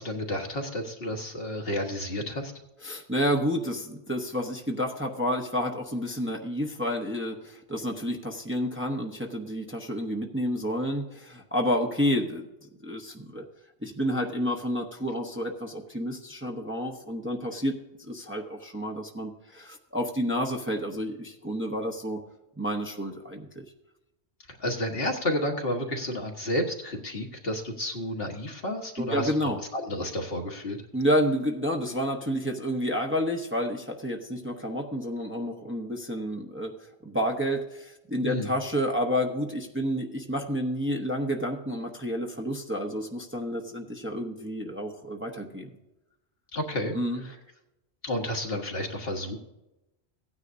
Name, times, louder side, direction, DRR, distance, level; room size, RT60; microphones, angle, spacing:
voice 1, 0.0-2.5 24.5-29.3 29.7-30.8 38.2-38.5 46.5-47.0 47.2-47.3 48.0-49.4, left 1 dB, 60° left, 2 dB, 1.6 m, -31 dB
voice 2, 2.8-12.5 12.8-13.4 13.8-22.2 22.6-23.6 29.0-29.6 30.9-45.7 46.9-47.2, equal, 10° right, 1 dB, 0.8 m, -30 dB
16.0 x 9.7 x 2.7 m, 0.95 s
omnidirectional pair, 1.1 m